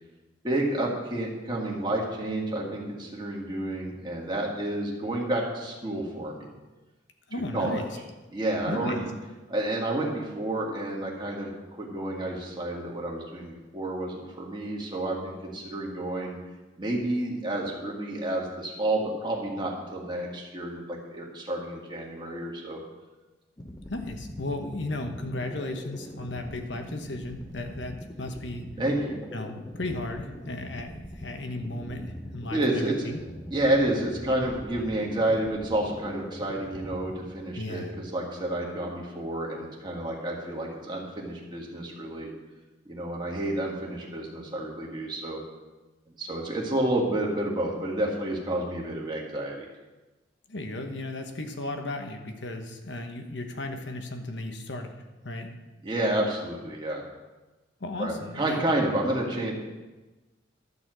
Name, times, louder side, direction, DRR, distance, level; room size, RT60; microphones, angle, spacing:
voice 1, 0.4-6.5 7.5-7.8 8.3-9.1 9.5-16.4 16.8-22.8 28.8-29.2 32.5-33.1 33.5-42.3 42.9-45.4 46.2-49.7 55.8-57.0 58.0-59.5, right 1 dB, 25° right, -2 dB, 2.0 m, -30 dB
voice 2, 7.3-7.9 8.7-9.0 23.9-28.7 29.3-33.2 37.6-37.9 50.5-54.9 55.2-55.5 57.8-58.6, left 2 dB, 70° left, 5 dB, 1.1 m, -35 dB
sound 1, 23.6-37.2, left 1 dB, 20° left, 0.8 m, -42 dB
12.5 x 4.3 x 7.6 m, 1.1 s
head